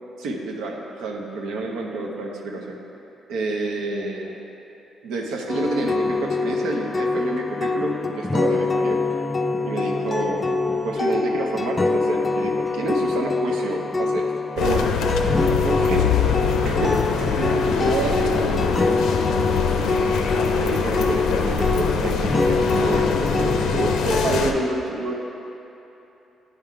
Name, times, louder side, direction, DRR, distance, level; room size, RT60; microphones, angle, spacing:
voice 1, 0.2-2.8 3.3-4.4 5.0-9.0 9.6-10.5 10.8-14.2 14.6-14.9 15.6-16.9 17.2-18.6 18.9-20.2 20.6-25.1, right 2 dB, 85° right, 1 dB, 0.7 m, -28 dB
sound 1, 5.5-24.4, left 3 dB, 25° left, 0.4 m, -24 dB
sound 2, 14.6-24.5, left 5 dB, 85° left, 0.5 m, -24 dB
9.5 x 3.6 x 4.5 m, 3.0 s
cardioid pair, 90°, 0 cm